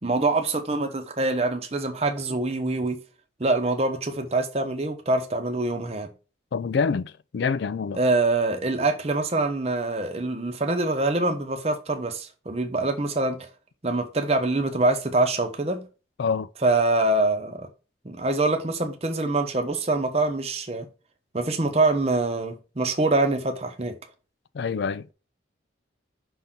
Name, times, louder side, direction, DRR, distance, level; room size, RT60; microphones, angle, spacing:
voice 1, 0.0-3.0 3.4-6.1 7.9-13.5 13.8-15.9 16.6-17.7 18.0-20.9 21.3-24.0, right 2 dB, 35° right, 0.8 m, -24 dB
voice 2, 6.5-8.0 16.2-16.5 24.5-25.1, left 5 dB, 65° left, 0.4 m, -26 dB
5.4 x 3.7 x 5.6 m
head